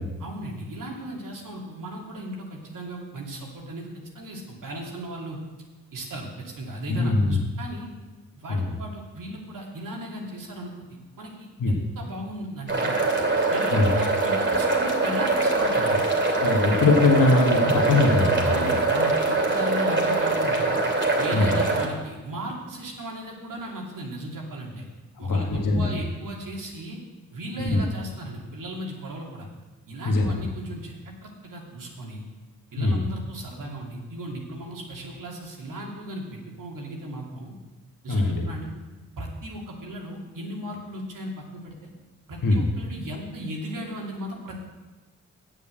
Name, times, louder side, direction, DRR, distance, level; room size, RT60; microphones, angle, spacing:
voice 1, 0.2-3.9 4.1-5.4 5.9-7.9 8.3-10.9 11.2-13.0 13.5-16.0 18.4-20.8 21.2-24.8 25.2-27.0 27.3-29.5 29.9-32.2 32.7-37.5 38.0-38.7 39.2-41.9 42.3-44.6, right 1 dB, 65° right, -1 dB, 2.6 m, -36 dB
voice 2, 6.9-7.3 8.5-8.7 11.6-11.7 13.7-13.9 16.4-18.7 21.3-21.5 25.2-26.0 27.6-27.8 30.0-30.4 32.8-33.0 38.1-38.4 42.4-42.6, left 2 dB, 70° left, 0 dB, 1.9 m, -22 dB
sound 1, 12.7-21.9, right 3 dB, 35° right, 2.6 m, -23 dB
7.9 x 7.2 x 7.8 m, 1.2 s
supercardioid pair, 45°, 34 cm